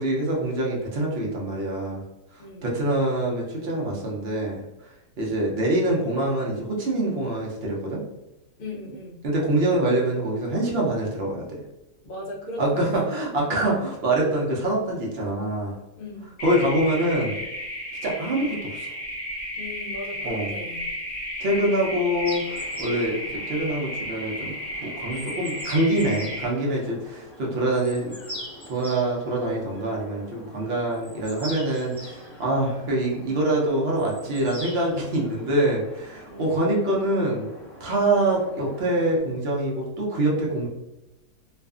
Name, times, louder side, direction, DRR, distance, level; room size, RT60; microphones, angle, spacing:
voice 1, 0.0-2.0 2.3-8.0 9.2-11.5 12.6-15.8 16.4-17.4 18.0-18.9 20.2-20.5 21.4-24.5 24.8-28.1 28.7-37.5 37.8-40.7, right 1 dB, 55° right, -3 dB, 0.7 m, -25 dB
voice 2, 2.4-2.8 8.6-9.2 12.0-13.6 16.0-16.3 19.6-20.9 36.3-36.8, left 1 dB, 75° left, -2 dB, 0.5 m, -38 dB
sound 1, 16.4-26.5, equal, 45° left, 0.8 m, -33 dB
sound 2, 22.2-39.2, equal, 25° left, 1.1 m, -43 dB
2.5 x 2.4 x 2.3 m, 0.96 s
omnidirectional pair, 1.5 m